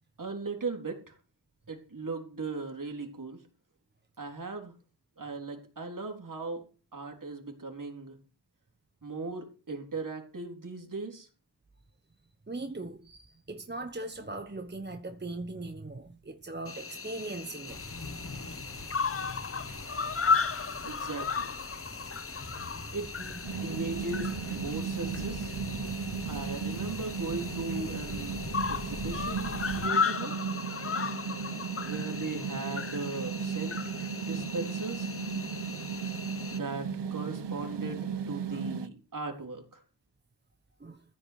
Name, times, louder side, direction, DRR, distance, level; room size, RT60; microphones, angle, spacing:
voice 1, 0.2-1.2 1.7-3.4 4.2-4.7 5.2-6.7 6.9-8.2 9.0-11.3 20.8-21.6 22.9-23.1 23.6-25.6 26.3-30.3 31.8-35.1 36.5-39.8, right 3 dB, 50° right, 3.8 m, -38 dB
voice 2, 12.5-18.1 23.2-23.3 26.0-26.2 30.9-31.0 38.5-38.6 40.8-41.0, right 2 dB, 25° right, 1.2 m, -40 dB
Cricket, 16.7-36.6, left 5 dB, 35° left, 0.8 m, -35 dB
sound 1, 17.7-29.9, left 2 dB, 50° left, 3.1 m, -43 dB
sound 2, 23.4-38.9, right 6 dB, 80° right, 1.2 m, -36 dB
15.0 x 5.1 x 9.4 m
wide cardioid pair, 80°, 41 cm